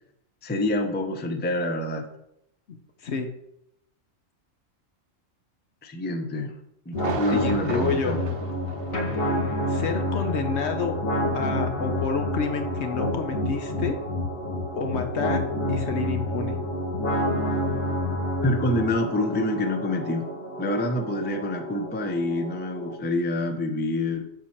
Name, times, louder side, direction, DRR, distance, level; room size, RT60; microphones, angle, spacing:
voice 1, 0.4-2.1 5.8-6.6 6.9-8.2 18.4-20.3 20.6-24.2, left 1 dB, 10° left, 4 dB, 0.5 m, -27 dB
voice 2, 2.7-3.3 7.3-8.2 9.7-11.0 11.3-14.0 14.8-15.4 15.7-16.6, left 5 dB, 60° left, 6 dB, 1.0 m, -29 dB
sound 1, 6.9-22.9, left 1 dB, 80° left, 2.1 m, -29 dB
Thunder, 6.9-9.5 9.8-9.9 10.4-10.5, right 6 dB, 50° right, 0.9 m, -37 dB
7.4 x 4.4 x 5.8 m, 0.80 s
omnidirectional pair, 1.4 m